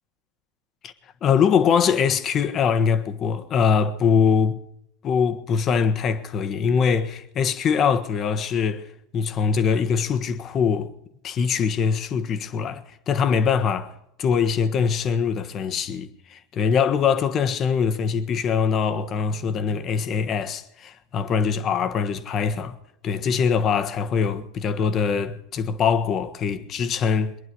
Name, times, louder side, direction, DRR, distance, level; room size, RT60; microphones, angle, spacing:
voice 1, 1.2-4.6 5.0-8.9 9.1-10.9 11.2-13.9 14.2-22.8 23.0-27.3, left 6 dB, 40° left, 1.5 m, -23 dB
23.0 x 11.0 x 5.4 m
hypercardioid pair, 85°, 0 cm